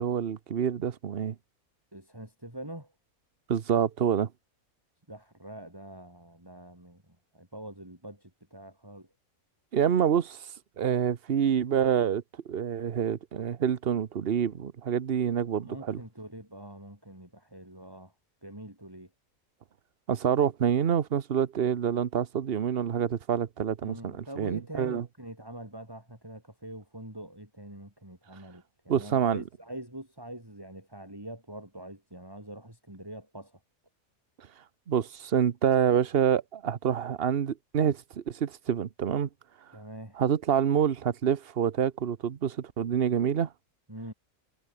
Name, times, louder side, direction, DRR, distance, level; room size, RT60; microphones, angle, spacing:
voice 1, 0.0-1.3 3.5-4.3 9.7-10.5 10.8-12.2 12.5-16.0 20.1-25.0 28.9-29.4 34.9-39.3 40.2-43.5, right 8 dB, 45° right, 1.1 m, -27 dB
voice 2, 1.9-2.9 5.1-9.1 15.6-18.1 18.4-19.1 23.8-33.6 39.7-40.2 43.9-44.1, right 1 dB, 15° right, 5.1 m, -44 dB
omnidirectional pair, 1.5 m